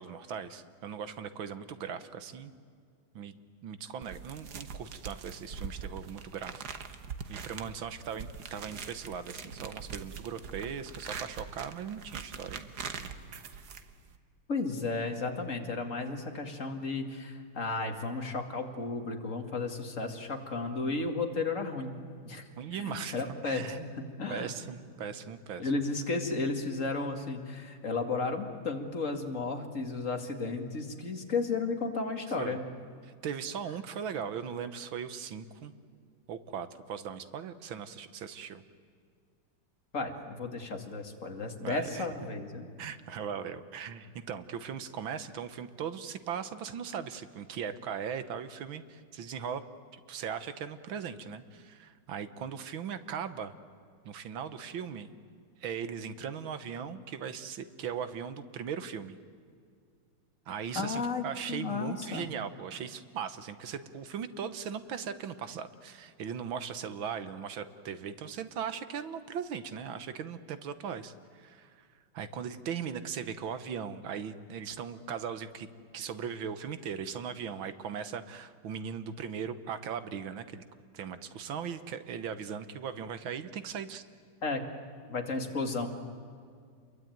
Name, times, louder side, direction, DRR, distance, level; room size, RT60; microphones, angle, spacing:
voice 1, 0.0-2.5 3.1-3.4 3.6-6.6 7.3-12.7 22.6-23.2 23.4-23.8 24.3-25.7 32.4-32.6 33.0-35.7 36.3-38.6 41.6-42.1 42.8-49.6 49.9-53.5 54.1-55.1 55.6-59.2 60.5-71.9 72.1-75.7 75.9-80.6 80.9-84.0, right 7 dB, 70° right, 12 dB, 1.9 m, -39 dB
sound 1, 4.0-14.2, right 6 dB, 55° right, 1.7 m, -43 dB
voice 2, 14.5-22.0 22.2-24.5 25.6-32.7 39.9-42.7 60.7-62.3 84.4-84.7 85.1-85.9, left 3 dB, 35° left, 4 dB, 2.4 m, -34 dB
28.0 x 22.5 x 9.3 m, 2.2 s
omnidirectional pair, 2.3 m